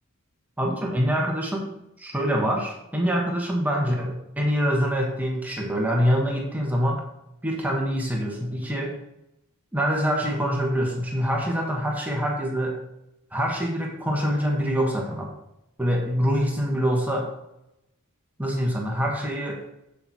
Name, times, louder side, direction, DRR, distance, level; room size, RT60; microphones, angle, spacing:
voice 1, 0.6-1.7 2.0-7.0 7.4-9.0 9.7-12.8 13.3-15.3 15.8-17.3 18.4-19.6, equal, 5° right, -1 dB, 1.1 m, -25 dB
7.6 x 6.7 x 4.1 m, 0.86 s
head